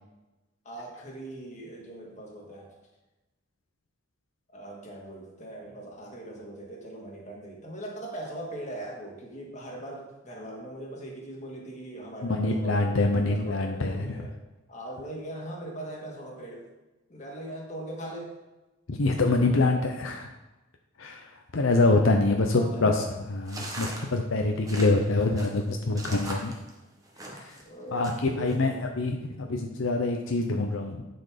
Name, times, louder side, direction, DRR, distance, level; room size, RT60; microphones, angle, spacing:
voice 1, 0.7-2.7 4.5-14.3 14.7-16.7 17.1-18.4 22.3-22.9 27.7-28.9, right 1 dB, 35° left, -1 dB, 1.8 m, -40 dB
voice 2, 12.2-14.3 18.9-20.3 21.0-26.5 27.3-27.6 27.9-31.0, left 2 dB, 75° left, 3 dB, 0.7 m, -25 dB
sound 1, 23.5-27.6 28.0-28.6, right 1 dB, 15° right, 1.1 m, -40 dB
10.5 x 4.4 x 5.0 m, 1.1 s
head